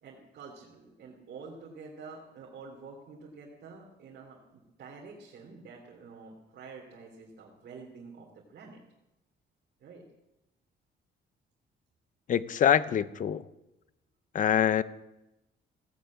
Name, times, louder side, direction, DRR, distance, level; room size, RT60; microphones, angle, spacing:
voice 1, 0.0-8.8 9.8-10.0, right 4 dB, 60° right, -2 dB, 3.0 m, -48 dB
voice 2, 12.3-13.5 14.3-14.8, left 9 dB, 45° left, 15 dB, 0.7 m, -25 dB
16.5 x 9.5 x 8.6 m, 0.95 s
cardioid pair, 135°, 19 cm